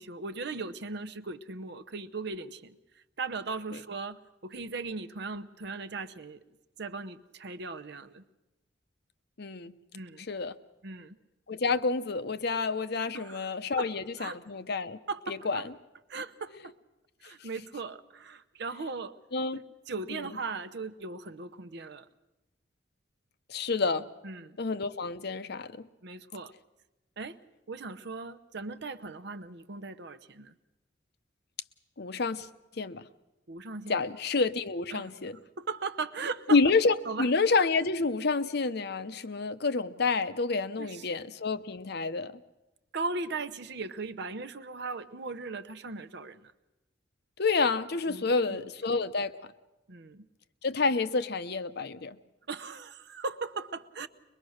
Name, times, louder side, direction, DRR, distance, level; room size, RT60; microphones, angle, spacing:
voice 1, 0.0-2.8 3.2-6.4 6.8-8.2 9.9-10.3 10.8-11.2 13.1-13.5 13.8-14.4 15.1-15.7 16.1-16.7 17.2-19.1 19.5-22.1 24.2-24.6 26.0-26.5 27.2-27.4 27.7-30.5 33.5-34.0 34.9-35.1 35.6-36.6 37.1-37.3 40.8-41.1 42.9-46.5 48.1-48.6 49.9-50.3 52.5-54.1, right 4 dB, 65° right, 12 dB, 0.9 m, -38 dB
voice 2, 9.4-9.7 10.3-10.6 11.5-15.0 15.3-15.6 19.3-19.6 20.1-20.3 23.5-24.1 24.6-25.8 32.0-32.5 32.8-33.0 33.9-35.3 36.5-42.3 47.4-49.3 50.6-52.2, left 4 dB, 60° left, 12 dB, 0.8 m, -28 dB
23.0 x 21.5 x 6.5 m, 0.99 s
head